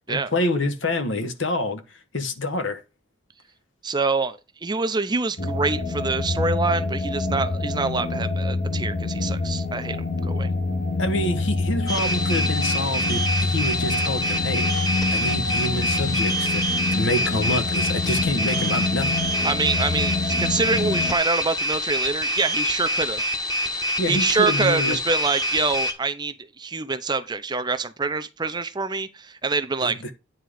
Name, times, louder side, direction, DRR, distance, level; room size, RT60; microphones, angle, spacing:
voice 1, 0.1-1.8 2.1-2.8 11.0-19.1 24.0-25.0 29.8-30.1, left 1 dB, 70° left, 1.2 m, -27 dB
voice 2, 3.8-10.5 19.4-23.3 24.1-30.0, right 4 dB, 20° right, 0.6 m, -26 dB
sound 1, 5.4-21.1, left 3 dB, 50° left, 1.2 m, -26 dB
sound 2, 11.9-25.9, equal, 20° left, 1.3 m, -26 dB
9.4 x 3.8 x 4.8 m
head